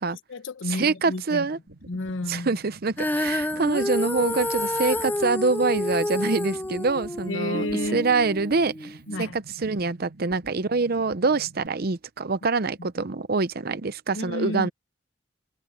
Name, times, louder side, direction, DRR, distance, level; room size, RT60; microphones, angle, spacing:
voice 1, 0.1-1.5 1.9-2.6 7.3-8.1 9.1-9.4 12.8-12.9 14.1-14.7, left 2 dB, 90° left, 1.1 m, -31 dB
voice 2, 0.7-1.6 2.3-7.7 7.9-14.7, right 3 dB, 50° right, 0.7 m, -25 dB
sound 1, 1.7-11.7, right 2 dB, 90° right, 3.4 m, -48 dB
Female singing, 3.0-9.2, left 1 dB, 10° left, 0.6 m, -29 dB
head